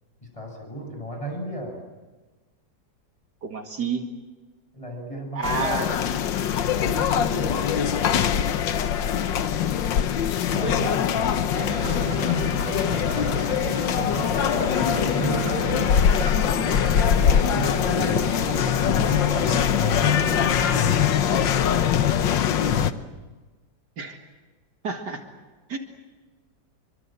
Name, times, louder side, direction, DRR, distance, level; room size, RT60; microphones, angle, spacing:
voice 1, 0.3-1.8 4.7-5.9 6.9-7.9 10.5-13.5 14.0-16.0 17.2-19.5 19.9-23.0, right 1 dB, 15° left, 1 dB, 7.9 m, -35 dB
voice 2, 3.4-4.0 5.3-5.9 10.6-10.8 24.0-24.2 24.8-25.2 25.7-25.8, right 5 dB, 65° right, 4 dB, 2.6 m, -29 dB
sound 1, 5.4-22.9, left 9 dB, 85° left, 1.7 m, -22 dB
sound 2, 11.5-21.0, right 3 dB, 90° right, 3.5 m, -34 dB
28.0 x 24.0 x 7.8 m, 1.3 s
omnidirectional pair, 1.9 m